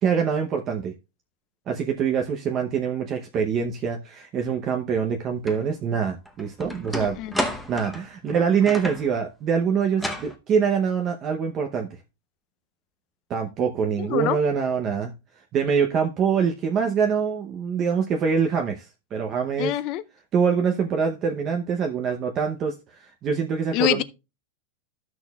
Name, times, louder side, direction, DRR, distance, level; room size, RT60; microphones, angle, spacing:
voice 1, 0.0-0.9 1.7-7.2 7.4-11.9 13.3-15.1 15.5-18.9 19.1-19.7 20.3-24.0, right 6 dB, 30° right, 0.8 m, -24 dB
sound 1, 5.5-5.6 6.1-9.1 9.9-10.3, left 1 dB, ahead, 0.8 m, -31 dB
voice 2, 14.0-14.4 19.6-20.0 23.7-24.0, left 14 dB, 40° left, 0.5 m, -25 dB
14.0 x 6.2 x 2.3 m
supercardioid pair, 160°, 0 cm